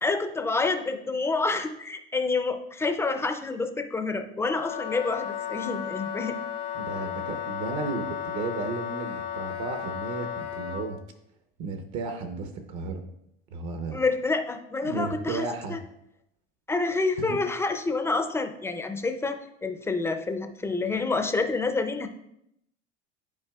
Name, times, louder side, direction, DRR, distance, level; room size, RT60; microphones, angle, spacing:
voice 1, 0.0-6.4 13.9-15.8 16.7-22.1, left 3 dB, 10° left, 7 dB, 0.4 m, -28 dB
Wind instrument woodwind instrument, 4.4-10.9, left 9 dB, 75° left, 0.8 m, -34 dB
voice 2, 6.7-11.0 11.6-13.0 13.5-14.0 14.8-15.8 17.2-17.4, right 4 dB, 60° right, 6 dB, 0.8 m, -34 dB
10.5 x 4.7 x 2.3 m, 0.78 s
cardioid pair, 140°, 30 cm